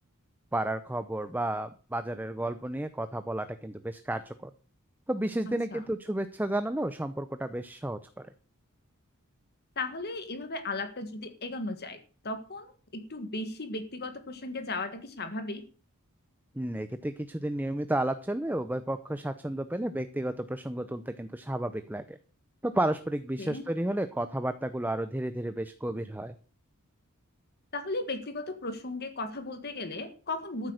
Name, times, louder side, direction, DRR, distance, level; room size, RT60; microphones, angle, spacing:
voice 1, 0.5-4.5 5.1-8.3 16.6-22.2 22.6-26.3, right 1 dB, 10° right, 10 dB, 0.6 m, -32 dB
voice 2, 5.5-5.8 9.7-12.0 12.2-15.6 23.4-23.6 27.7-30.7, left 2 dB, 45° left, 9 dB, 1.7 m, -36 dB
14.0 x 8.2 x 6.5 m, 0.39 s
head